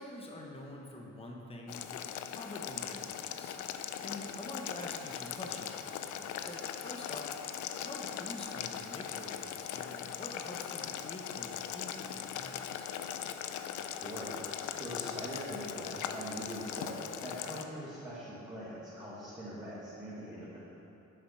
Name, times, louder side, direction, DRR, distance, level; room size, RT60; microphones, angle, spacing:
voice 1, 0.0-7.4 7.8-12.9, left 1 dB, 20° left, 0 dB, 1.0 m, -47 dB
Boiling, 1.7-17.6, left 9 dB, 75° left, 0.5 m, -40 dB
voice 2, 13.9-20.6, equal, 15° right, -10 dB, 1.9 m, -42 dB
8.3 x 5.8 x 5.8 m, 2.8 s
cardioid pair, 90°, 30 cm